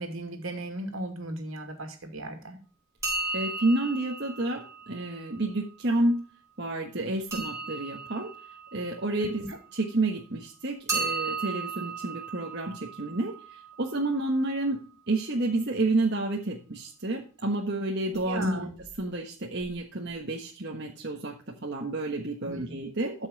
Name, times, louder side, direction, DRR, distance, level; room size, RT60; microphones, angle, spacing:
voice 1, 0.0-2.6 18.3-18.7 22.4-22.7, right 1 dB, 70° right, 5 dB, 2.5 m, -35 dB
Bell Short Quiet Tings, 3.0-5.7 7.3-10.0 10.9-14.7 18.1-18.5 18.8-18.9 19.6-19.7 20.0-20.1, right 4 dB, 15° right, 4.4 m, -36 dB
voice 2, 3.3-6.1 6.6-8.3 8.7-9.5 9.7-14.8 15.1-18.7 19.0-21.4 21.6-23.3, right 2 dB, 50° right, 0 dB, 1.4 m, -30 dB
13.5 x 5.7 x 4.0 m, 0.37 s
head